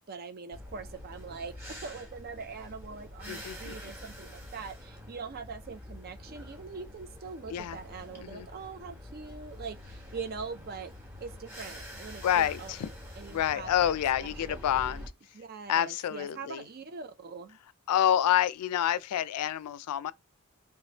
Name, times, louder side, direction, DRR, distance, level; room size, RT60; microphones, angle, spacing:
voice 1, 0.0-10.9 11.2-12.7 13.2-13.9 14.2-14.6 15.3-17.6, right 5 dB, 45° right, 0.5 m, -42 dB
sound 1, 0.5-15.1, left 1 dB, 10° right, 1.2 m, -46 dB
voice 2, 3.3-3.7 7.5-7.8 8.2-8.5 12.2-12.9 13.3-15.0 15.7-16.6 17.9-20.1, left 10 dB, 90° left, 0.3 m, -28 dB
3.4 x 3.1 x 2.9 m
head